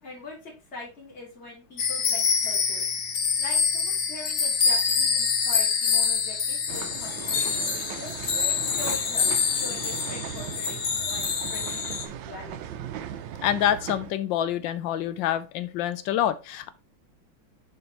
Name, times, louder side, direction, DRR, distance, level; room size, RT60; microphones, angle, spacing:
voice 1, 0.0-2.9 3.4-8.1 8.5-12.6, left 2 dB, 30° left, -4 dB, 2.8 m, -42 dB
sound 1, 1.8-12.1, left 6 dB, 50° left, 1.1 m, -26 dB
sound 2, 6.7-14.1, right 10 dB, 75° right, 1.3 m, -38 dB
voice 2, 13.4-16.7, left 11 dB, 75° left, 13 dB, 1.3 m, -26 dB
7.1 x 5.0 x 3.0 m, 0.29 s
omnidirectional pair, 2.2 m